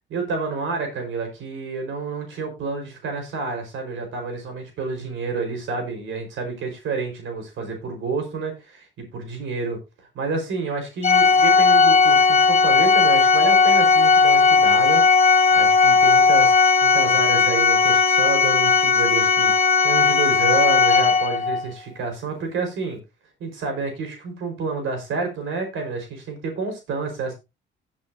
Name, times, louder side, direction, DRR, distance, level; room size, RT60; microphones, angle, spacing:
voice 1, 0.1-15.0 15.5-23.0 23.4-27.3, right 4 dB, 80° right, 4 dB, 4.8 m, -29 dB
Organ, 11.0-21.6, left 5 dB, 35° left, 2.3 m, -16 dB
16.5 x 7.5 x 2.8 m, 0.25 s
cardioid pair, 90°, 20 cm